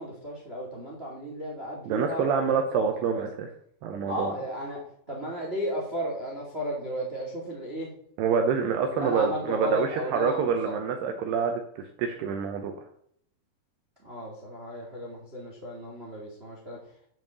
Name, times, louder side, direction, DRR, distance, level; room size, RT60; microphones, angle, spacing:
voice 1, 0.0-2.9 4.1-7.9 8.9-10.8 14.0-16.8, equal, 35° right, -2 dB, 0.9 m, -34 dB
voice 2, 1.9-3.5 3.8-4.3 8.2-12.7, right 6 dB, 75° right, 5 dB, 2.5 m, -27 dB
9.3 x 5.8 x 6.9 m, 0.66 s
omnidirectional pair, 5.7 m